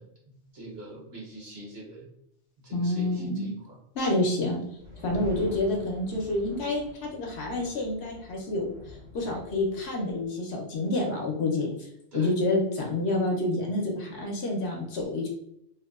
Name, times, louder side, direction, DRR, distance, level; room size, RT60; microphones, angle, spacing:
voice 1, 0.0-2.1 2.6-3.8 12.1-12.4, right 1 dB, 60° right, -3 dB, 0.9 m, -44 dB
voice 2, 2.7-3.5 4.0-11.9 12.1-15.3, left 2 dB, 65° left, 0 dB, 0.8 m, -28 dB
sound 1, 4.8-10.3, equal, 85° right, 1.1 m, -45 dB
2.7 x 2.1 x 2.3 m, 0.74 s
omnidirectional pair, 1.3 m